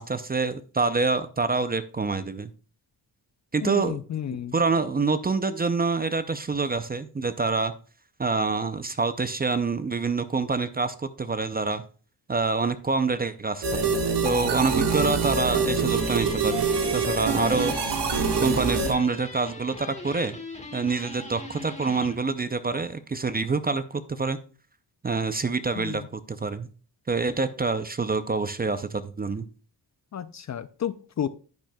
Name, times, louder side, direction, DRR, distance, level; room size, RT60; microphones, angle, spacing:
voice 1, 0.0-2.5 3.5-4.0 4.5-7.7 8.2-11.8 12.3-13.9 14.2-16.7 16.9-17.8 18.4-20.4 20.7-24.4 25.0-26.7 27.1-29.4, right 4 dB, 20° right, 12 dB, 0.5 m, -26 dB
voice 2, 3.6-4.5 25.8-26.1 30.1-31.3, left 9 dB, 40° left, 14 dB, 0.4 m, -32 dB
sound 1, 13.6-18.9, right 4 dB, 65° right, 1.6 m, -25 dB
sound 2, 15.8-22.2, left 2 dB, 15° left, 1.4 m, -41 dB
10.5 x 8.9 x 2.2 m, 0.38 s
wide cardioid pair, 115°, 44 cm